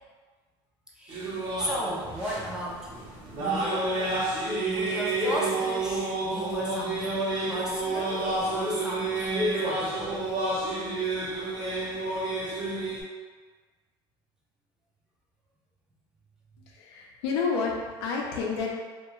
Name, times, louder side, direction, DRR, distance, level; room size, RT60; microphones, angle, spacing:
voice 1, 1.0-1.3 1.6-3.9 4.7-7.1 7.5-10.3, equal, 5° right, -5 dB, 0.5 m, -35 dB
sound 1, 1.1-13.0, right 2 dB, 40° right, 0.8 m, -30 dB
voice 2, 16.7-18.7, left 5 dB, 80° left, -1 dB, 0.6 m, -30 dB
2.3 x 2.2 x 3.0 m, 1.5 s
supercardioid pair, 115°, 13 cm